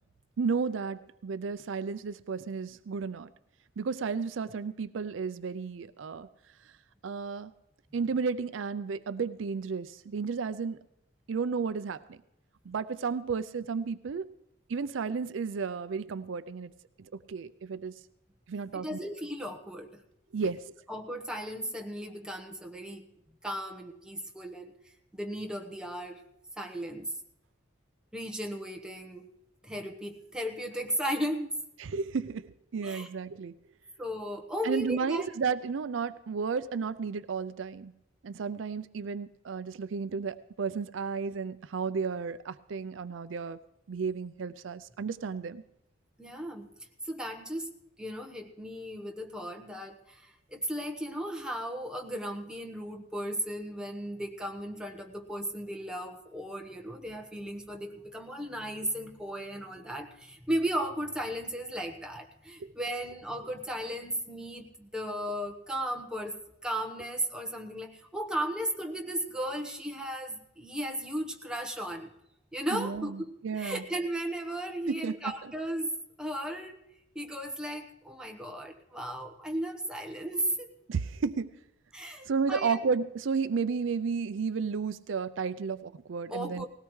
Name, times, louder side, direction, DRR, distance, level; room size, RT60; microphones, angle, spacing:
voice 1, 0.4-3.3 3.8-6.3 7.0-7.5 7.9-10.8 11.3-12.2 12.7-14.3 14.7-16.7 17.3-17.9 18.5-19.0 20.3-20.6 31.8-33.5 34.6-37.9 38.2-43.6 43.9-45.6 62.6-62.7 72.7-73.2 73.4-73.8 74.9-75.3 80.9-81.5 82.3-86.6, right 5 dB, 70° right, 14 dB, 0.4 m, -32 dB
voice 2, 18.7-20.0 20.4-20.5 20.9-23.0 23.4-24.7 25.1-26.2 26.6-27.1 28.1-29.3 29.6-31.6 32.8-33.1 34.0-35.3 46.2-46.7 47.0-47.7 48.0-66.4 66.6-72.1 72.5-73.3 73.5-76.8 77.1-80.7 81.9-82.8 86.3-86.7, right 1 dB, 5° right, 3 dB, 1.1 m, -35 dB
19.5 x 17.0 x 3.2 m, 0.82 s
head